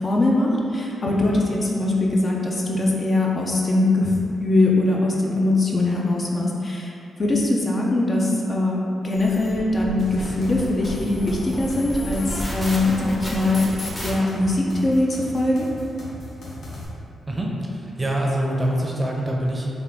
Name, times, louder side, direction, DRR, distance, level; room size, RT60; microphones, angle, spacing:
voice 1, 0.0-4.1 4.4-6.9 7.2-13.6 14.0-15.7, left 2 dB, 40° left, -3 dB, 0.5 m, -21 dB
sound 1, 9.1-14.1, left 1 dB, 25° left, 0.9 m, -32 dB
sound 2, 10.0-16.8, left 1 dB, 70° left, 0.9 m, -38 dB
voice 2, 17.3-19.7, right 1 dB, 25° right, -2 dB, 0.6 m, -25 dB
3.6 x 2.4 x 3.5 m, 2.7 s
cardioid pair, 65°, 0 cm